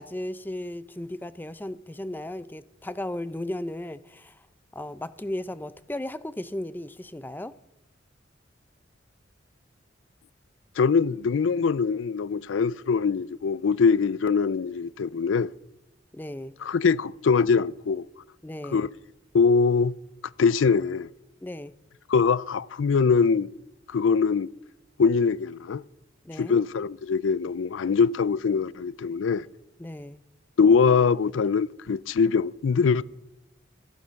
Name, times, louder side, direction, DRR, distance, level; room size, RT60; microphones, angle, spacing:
voice 1, 0.0-4.4 4.7-7.5 16.1-16.5 18.4-18.9 21.4-21.7 26.2-26.6 29.8-30.2, left 1 dB, 10° left, 0.5 m, -35 dB
voice 2, 10.8-15.5 16.6-18.1 18.7-18.9 19.3-19.9 20.4-21.1 22.1-23.5 23.9-24.5 25.0-25.8 26.4-29.4 30.6-33.0, left 5 dB, 80° left, 0.4 m, -22 dB
16.0 x 13.5 x 5.7 m
head